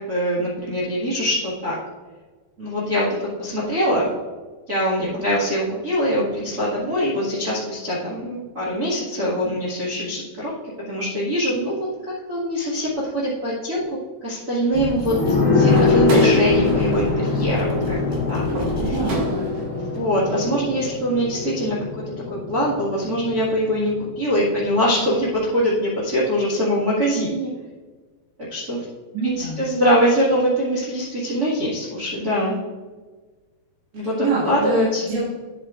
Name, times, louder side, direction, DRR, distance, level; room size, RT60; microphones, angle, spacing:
voice 1, 0.0-1.8 2.6-4.1 4.7-10.5 10.9-11.7 12.3-13.8 14.2-15.1 15.5-17.9 18.3-18.4 18.8-18.9 19.9-21.8 22.3-27.5 28.5-28.8 29.2-32.5 33.9-34.1 34.4-35.2, equal, 40° right, -5 dB, 1.3 m, -23 dB
sound 1, 14.7-15.4 15.7-19.2, equal, 40° left, 0.6 m, -31 dB
sound 2, 15.0-24.3 24.6-24.7, left 4 dB, 80° left, 0.7 m, -23 dB
sound 3, 15.7-19.8, right 3 dB, 65° right, 4.1 m, -29 dB
voice 2, 18.8-19.9 29.1-29.6 33.9-35.2, right 4 dB, 80° right, -9 dB, 4.2 m, -27 dB
9.9 x 8.1 x 2.5 m, 1.4 s
omnidirectional pair, 4.9 m